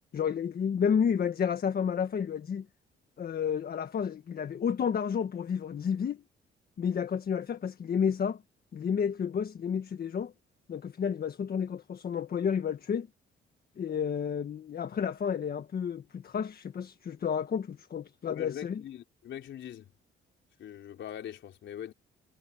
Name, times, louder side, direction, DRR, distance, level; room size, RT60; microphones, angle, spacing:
voice 1, 0.1-2.6 3.2-6.2 6.8-8.4 8.7-10.3 10.7-13.1 13.8-18.8, left 7 dB, 50° left, 1.6 m, -31 dB
voice 2, 18.3-19.9 20.6-21.9, left 10 dB, 70° left, 4.2 m, -42 dB
cardioid pair, 90°, 20 cm